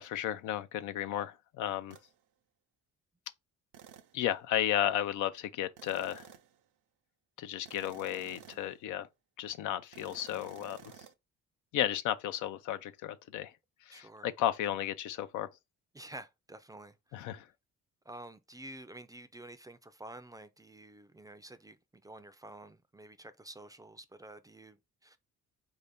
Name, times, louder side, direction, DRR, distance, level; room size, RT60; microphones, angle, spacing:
voice 1, 0.0-2.0 4.1-6.3 7.4-9.1 9.4-10.8 11.7-13.5 13.9-15.5 17.1-17.4, left 11 dB, 85° left, 0.5 m, -33 dB
sound 1, 1.9-2.1 3.7-4.2 5.8-6.6 7.6-8.8 9.9-11.1, right 10 dB, 85° right, 0.6 m, -53 dB
voice 2, 8.3-8.7 13.9-14.3 15.9-17.3 18.1-25.2, right 1 dB, 10° right, 0.4 m, -50 dB
4.3 x 2.7 x 3.4 m
cardioid pair, 90°, 30 cm